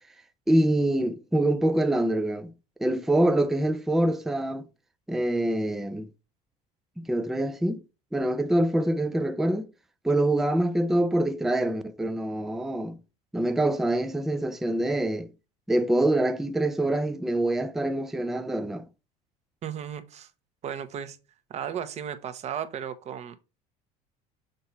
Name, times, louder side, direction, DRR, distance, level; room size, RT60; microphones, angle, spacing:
voice 1, 0.5-2.5 2.8-4.6 5.1-6.1 7.0-7.8 8.1-9.7 10.0-13.0 13.3-15.3 15.7-18.8, right 1 dB, ahead, 0.4 m, -25 dB
voice 2, 19.6-20.3 20.6-21.2 21.5-23.4, right 8 dB, 40° right, 1.0 m, -35 dB
6.6 x 4.2 x 4.5 m
cardioid pair, 140°, 17 cm